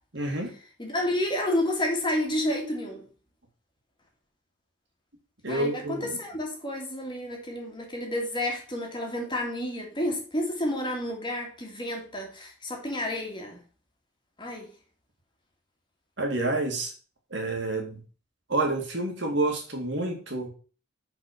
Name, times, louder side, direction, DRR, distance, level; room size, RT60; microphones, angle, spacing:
voice 1, 0.1-0.5 5.4-6.2 16.2-16.9 17.3-18.0 18.5-20.5, right 2 dB, 60° right, 2.5 m, -28 dB
voice 2, 0.8-3.1 5.5-13.6 14.4-14.7, left 1 dB, 25° left, 2.2 m, -30 dB
6.0 x 5.4 x 6.8 m
head